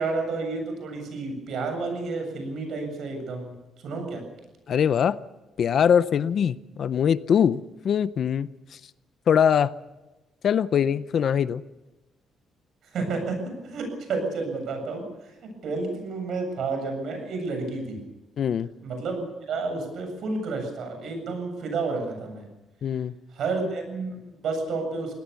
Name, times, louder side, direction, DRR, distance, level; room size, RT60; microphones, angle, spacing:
voice 1, 0.0-3.5 3.8-4.2 12.9-18.0 18.8-22.4 23.3-25.2, right 3 dB, 60° right, 5 dB, 7.6 m, -30 dB
voice 2, 4.7-5.2 5.6-8.5 9.3-9.7 10.4-11.6 18.4-18.7 22.8-23.1, left 8 dB, 50° left, 16 dB, 0.6 m, -22 dB
23.5 x 18.0 x 7.0 m, 1.1 s
cardioid pair, 160°, 0 cm